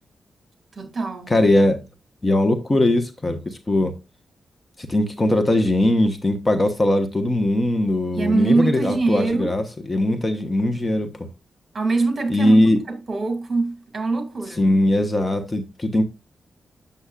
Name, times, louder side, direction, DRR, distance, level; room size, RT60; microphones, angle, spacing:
voice 1, 0.8-1.3 8.1-9.5 11.7-12.6 12.9-14.7, right 3 dB, 40° right, 2.3 m, -23 dB
voice 2, 1.3-1.8 2.2-3.9 4.9-11.3 12.3-12.8 14.6-16.0, left 1 dB, 25° left, 1.1 m, -20 dB
8.1 x 7.0 x 2.4 m
cardioid pair, 80°, 0 cm